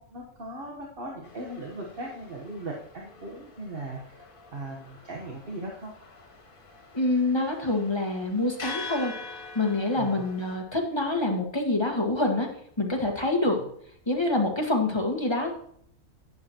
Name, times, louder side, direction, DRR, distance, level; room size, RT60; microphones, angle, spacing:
voice 1, 0.0-4.3 4.5-5.9 10.0-10.3 13.4-13.5, right 2 dB, 40° right, -2 dB, 1.3 m, -38 dB
sound 1, 1.2-10.6, left 3 dB, 65° left, 2.1 m, -44 dB
voice 2, 6.9-9.1 9.5-12.5 12.8-13.6 14.1-15.5, left 2 dB, 20° left, 1 dB, 1.4 m, -26 dB
11.5 x 9.7 x 2.9 m, 0.64 s
omnidirectional pair, 1.6 m